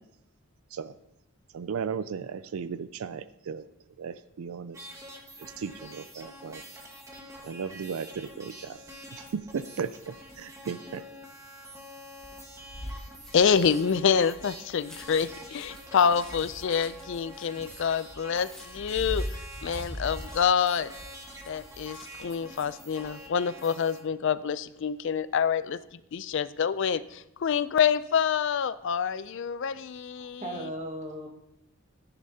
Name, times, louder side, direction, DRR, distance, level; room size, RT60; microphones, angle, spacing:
voice 1, 1.5-3.6 4.0-4.9 5.4-6.6 7.4-8.8 9.1-11.0, right 6 dB, 80° right, 14 dB, 0.4 m, -36 dB
sound 1, 4.7-24.0, equal, 15° right, 1.4 m, -46 dB
sound 2, 12.2-22.4 22.7-23.1, equal, 5° left, 1.3 m, -41 dB
voice 2, 13.3-20.9 21.5-30.7, left 7 dB, 60° left, 15 dB, 0.4 m, -27 dB
voice 3, 30.2-31.3, right 1 dB, 30° right, 1 dB, 1.7 m, -37 dB
14.5 x 10.0 x 2.8 m, 0.86 s
head